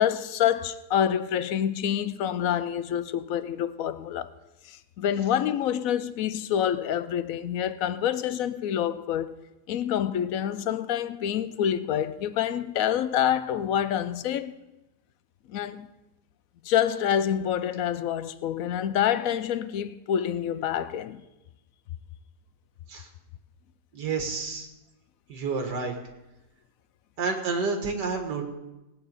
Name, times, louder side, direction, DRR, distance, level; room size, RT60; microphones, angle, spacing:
voice 1, 0.0-4.3 4.6-9.3 9.7-14.6 15.5-15.9 16.6-21.2, left 9 dB, 70° left, 0.9 m, -27 dB
voice 2, 23.9-24.7 25.3-25.9 27.2-28.4, right 4 dB, 90° right, 2.1 m, -29 dB
17.5 x 8.7 x 5.3 m
omnidirectional pair, 1.8 m